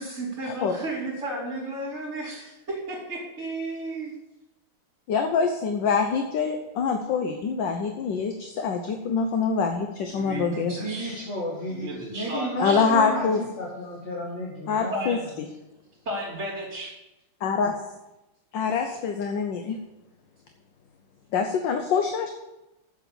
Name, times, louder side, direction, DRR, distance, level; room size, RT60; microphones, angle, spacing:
voice 1, 0.0-4.2 10.1-11.2 11.7-12.8 14.9-15.2 16.1-16.9, right 1 dB, 30° right, -11 dB, 3.5 m, -33 dB
voice 2, 5.1-11.2 12.6-13.4 14.7-15.5 17.4-17.9 18.5-19.8 21.3-22.3, left 5 dB, 65° left, 5 dB, 1.5 m, -25 dB
voice 3, 10.7-15.2, equal, 35° left, -4 dB, 2.3 m, -32 dB
8.2 x 7.6 x 8.7 m, 0.96 s
omnidirectional pair, 2.3 m